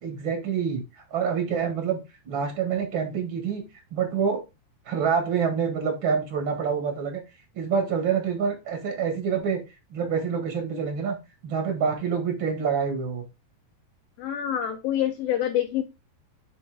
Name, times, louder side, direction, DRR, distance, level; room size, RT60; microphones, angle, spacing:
voice 1, 0.0-0.8 1.1-2.0 2.2-3.6 3.9-4.4 4.8-7.2 7.5-9.6 9.9-11.2 11.4-13.2, right 6 dB, 80° right, 1.1 m, -26 dB
voice 2, 14.2-15.8, left 11 dB, 85° left, 2.0 m, -26 dB
9.2 x 3.4 x 4.9 m
omnidirectional pair, 5.1 m